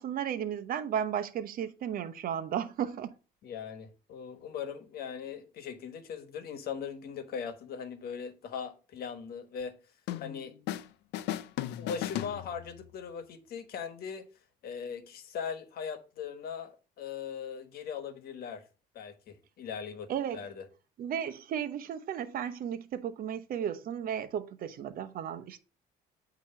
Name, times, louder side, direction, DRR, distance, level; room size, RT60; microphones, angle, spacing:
voice 1, 0.0-3.1 20.1-20.4 21.0-25.6, right 9 dB, 60° right, 0.8 m, -34 dB
voice 2, 3.4-9.8 10.2-10.5 11.8-14.3 14.6-18.6 18.9-20.7, left 7 dB, 65° left, 1.3 m, -40 dB
sound 1, 10.1-10.9 11.1-12.9, left 13 dB, 85° left, 0.5 m, -36 dB
8.6 x 3.0 x 5.8 m
cardioid pair, 110°, 17 cm